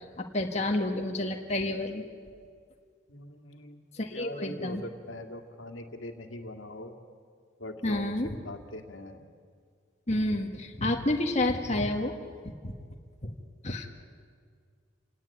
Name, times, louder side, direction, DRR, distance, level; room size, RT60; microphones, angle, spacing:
voice 1, 0.0-2.0 3.9-4.8 7.8-8.3 10.1-12.1 12.6-12.7 13.2-13.3 13.6-13.9, left 1 dB, 35° left, 2 dB, 1.6 m, -29 dB
voice 2, 3.1-3.8 4.1-6.9 7.6-8.1 8.4-9.2, left 1 dB, 85° left, 4 dB, 2.3 m, -42 dB
28.0 x 17.5 x 9.8 m, 2.1 s
head